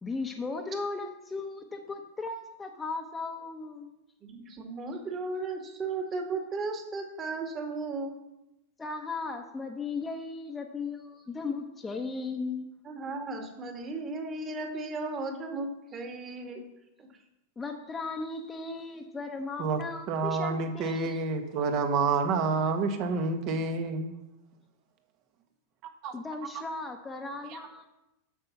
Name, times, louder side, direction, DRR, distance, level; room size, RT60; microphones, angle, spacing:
voice 1, 0.0-3.9 8.8-12.7 17.6-21.3 26.1-27.9, left 3 dB, 15° left, 2 dB, 1.0 m, -36 dB
voice 2, 4.2-8.1 12.8-16.7 17.0-17.2, right 3 dB, 30° right, 4 dB, 2.1 m, -35 dB
voice 3, 20.1-24.1 25.8-26.1, right 4 dB, 50° right, 6 dB, 1.5 m, -28 dB
8.8 x 6.8 x 5.9 m, 0.92 s
hypercardioid pair, 100°, 0 cm